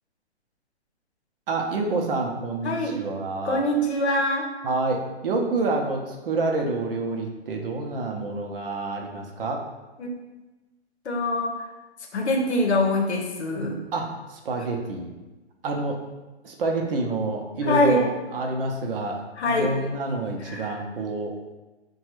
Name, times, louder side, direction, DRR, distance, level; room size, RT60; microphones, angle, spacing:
voice 1, 1.5-3.6 4.6-9.6 13.9-15.1 15.6-16.0 16.4-21.3, right 3 dB, 55° right, 2 dB, 0.6 m, -28 dB
voice 2, 2.6-3.0 3.4-4.5 10.0-10.1 11.0-11.6 12.1-13.8 17.6-18.1 19.4-19.8 20.5-20.7, left 1 dB, 75° left, 2 dB, 0.8 m, -24 dB
3.7 x 2.3 x 3.0 m, 1.1 s
figure-of-eight pair, 125°, 33 cm